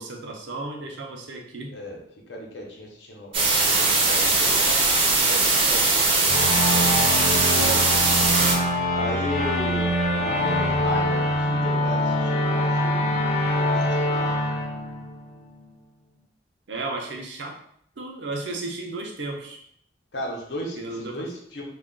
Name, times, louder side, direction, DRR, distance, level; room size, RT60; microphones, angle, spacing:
voice 1, 0.0-1.7 7.5-8.5 16.7-17.6 18.0-19.6 20.8-21.3, right 3 dB, 90° right, 2 dB, 0.6 m, -34 dB
voice 2, 1.7-2.0 2.3-6.5 8.9-14.5 20.1-21.7, left 1 dB, 80° left, -1 dB, 0.7 m, -35 dB
sound 1, 3.3-8.5, right 3 dB, 30° right, 0.5 m, -20 dB
sound 2, 6.3-15.6, left 1 dB, 40° left, 0.4 m, -24 dB
2.4 x 2.2 x 3.7 m, 0.69 s
head